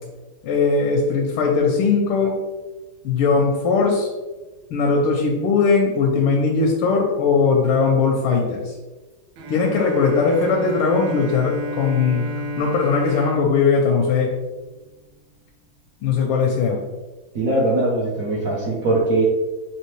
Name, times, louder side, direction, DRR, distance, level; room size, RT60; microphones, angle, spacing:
voice 1, 0.4-2.4 3.0-4.1 4.7-8.8 9.5-14.3 16.0-16.8, left 4 dB, 85° left, -1 dB, 1.4 m, -19 dB
Bowed string instrument, 9.4-15.0, right 2 dB, 90° right, 1.5 m, -33 dB
voice 2, 17.3-19.2, right 2 dB, 70° right, -5 dB, 0.8 m, -21 dB
4.3 x 2.8 x 3.1 m, 1.2 s
omnidirectional pair, 2.3 m